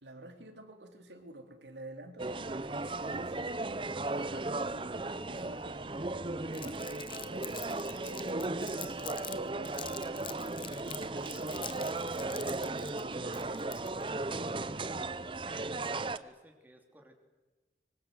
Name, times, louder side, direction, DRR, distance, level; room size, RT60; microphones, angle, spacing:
voice 1, 0.0-13.6, right 1 dB, 80° right, 4 dB, 3.4 m, -50 dB
sound 1, 2.2-16.2, right 2 dB, 30° right, 0.7 m, -36 dB
Crumpling crinkling, 6.5-9.4 9.6-14.1, left 9 dB, 30° left, 0.9 m, -45 dB
voice 2, 15.5-17.2, equal, 10° right, 2 dB, 3.0 m, -57 dB
25.0 x 24.0 x 7.9 m, 1.2 s
head